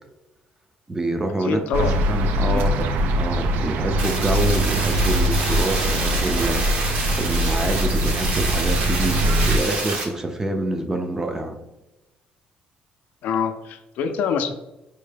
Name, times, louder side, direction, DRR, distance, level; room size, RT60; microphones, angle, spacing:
voice 1, 0.9-2.9 3.2-11.6, right 2 dB, 15° right, 6 dB, 0.4 m, -27 dB
voice 2, 1.4-2.0 2.5-2.8 13.2-14.6, left 6 dB, 75° left, 7 dB, 0.4 m, -25 dB
sound 1, 1.7-9.6, right 1 dB, 80° right, 0.3 m, -22 dB
sound 2, 4.0-10.0, right 2 dB, 50° right, 0.9 m, -28 dB
4.4 x 2.1 x 3.3 m, 0.94 s
cardioid pair, 135°, 3 cm